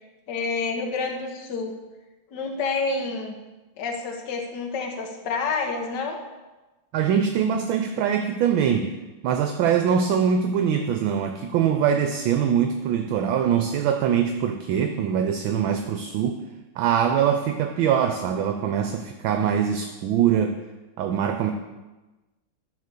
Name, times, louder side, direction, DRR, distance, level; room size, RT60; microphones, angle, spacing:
voice 1, 0.3-1.7 2.3-3.3 3.8-6.2, left 4 dB, 60° left, 2 dB, 1.6 m, -28 dB
voice 2, 6.9-8.9 9.2-16.4 16.8-20.6 21.0-21.5, right 8 dB, 75° right, 6 dB, 1.3 m, -23 dB
11.5 x 4.2 x 6.7 m, 1.1 s
omnidirectional pair, 2.3 m